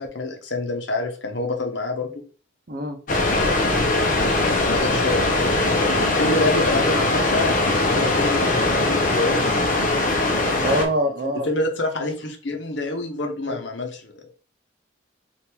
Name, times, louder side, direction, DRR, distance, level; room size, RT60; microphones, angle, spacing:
voice 1, 0.0-2.2 4.3-9.4 11.2-14.3, left 2 dB, 75° left, 4 dB, 0.9 m, -27 dB
sound 1, 3.1-10.8, left 2 dB, 45° left, 0.8 m, -21 dB
voice 2, 10.6-11.5 12.0-12.1 13.5-13.6, equal, 50° right, 5 dB, 0.6 m, -24 dB
3.5 x 2.5 x 4.4 m, 0.39 s
head